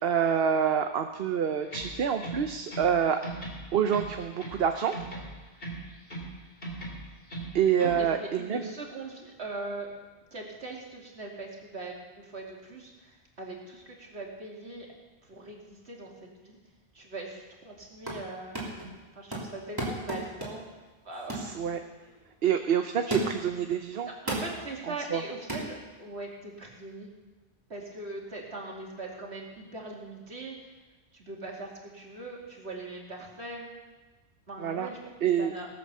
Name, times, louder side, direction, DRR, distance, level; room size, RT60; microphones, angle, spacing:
voice 1, 0.0-3.2 3.7-4.9 7.5-8.6 21.3-21.8 22.4-24.1 25.1-25.2 34.6-34.9 35.2-35.5, right 8 dB, 65° right, 7 dB, 0.9 m, -27 dB
sound 1, 1.7-3.0 3.2-4.7 4.9-6.3 6.6-8.0, right 2 dB, 60° left, 2.9 m, -39 dB
voice 2, 7.8-10.0 10.3-14.9 15.2-16.6 16.9-18.6 19.1-20.6 21.0-21.5 24.2-27.1 27.7-30.7 31.1-33.7 34.5-35.7, right 2 dB, 85° right, -2 dB, 2.8 m, -41 dB
sound 2, 17.8-18.3 18.5-18.9 19.3-20.7 21.3-21.5 22.0-22.2 23.1-23.5 24.3-24.6 25.5-25.7, right 1 dB, 20° right, 3.0 m, -34 dB
18.0 x 8.2 x 6.7 m, 1.3 s
omnidirectional pair, 1.1 m